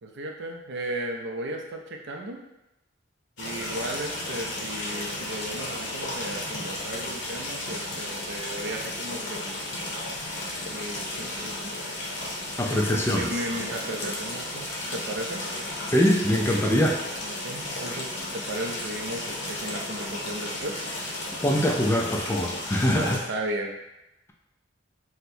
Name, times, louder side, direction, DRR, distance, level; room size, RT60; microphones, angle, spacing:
voice 1, 0.0-2.4 3.4-9.8 10.7-11.7 12.7-15.4 17.2-20.9 22.9-23.7, right 1 dB, 65° right, 1 dB, 0.5 m, -35 dB
sound 1, 3.4-23.2, left 1 dB, 65° left, 0.8 m, -34 dB
voice 2, 12.6-13.3 15.9-17.0 21.4-23.2, equal, 15° left, -1 dB, 0.3 m, -23 dB
4.3 x 2.1 x 2.6 m, 0.93 s
head